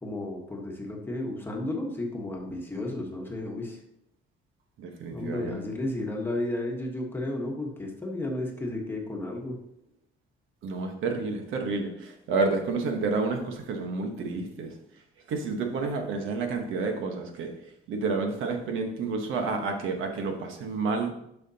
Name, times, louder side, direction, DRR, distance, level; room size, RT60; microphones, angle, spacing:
voice 1, 0.0-3.8 5.1-9.6, left 1 dB, 10° left, 0 dB, 1.3 m, -33 dB
voice 2, 4.8-5.6 10.6-14.7 15.3-17.5 17.9-21.1, right 4 dB, 75° right, 4 dB, 1.3 m, -30 dB
11.0 x 5.8 x 2.9 m, 0.77 s
cardioid pair, 150°, 21 cm